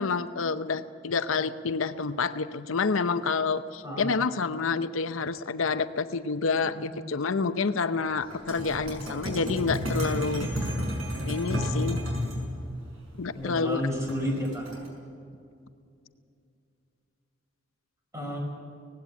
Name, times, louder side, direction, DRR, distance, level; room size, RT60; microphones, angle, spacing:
voice 1, 0.0-10.5 11.2-12.0 13.2-13.8, left 4 dB, 80° left, 11 dB, 0.7 m, -28 dB
sound 1, 8.3-12.4 14.1-14.9, equal, 85° right, 5.9 m, -31 dB
voice 2, 13.3-14.6 18.1-18.4, equal, 15° right, -1 dB, 5.1 m, -31 dB
18.5 x 16.5 x 8.6 m, 2.5 s
head